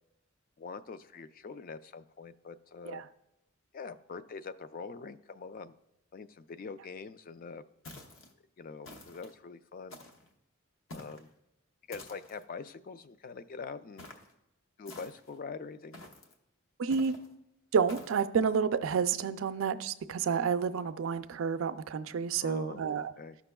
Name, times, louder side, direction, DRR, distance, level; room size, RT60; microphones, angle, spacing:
voice 1, 0.6-3.0 3.7-5.7 6.1-7.6 8.6-10.0 10.9-11.3 11.9-14.1 14.8-16.0 22.4-23.4, left 4 dB, 40° left, 12 dB, 0.3 m, -44 dB
sound 1, 7.8-8.3 8.8-9.3 9.9-10.3 10.9-11.3 11.9-12.4 14.0-14.3 14.8-15.4 15.9-16.3 16.9-17.3 17.9-18.2, left 2 dB, 65° left, 1.0 m, -49 dB
voice 2, 16.8-17.2 17.7-23.1, right 6 dB, 70° right, 11 dB, 0.4 m, -30 dB
13.5 x 6.0 x 2.2 m, 0.87 s
head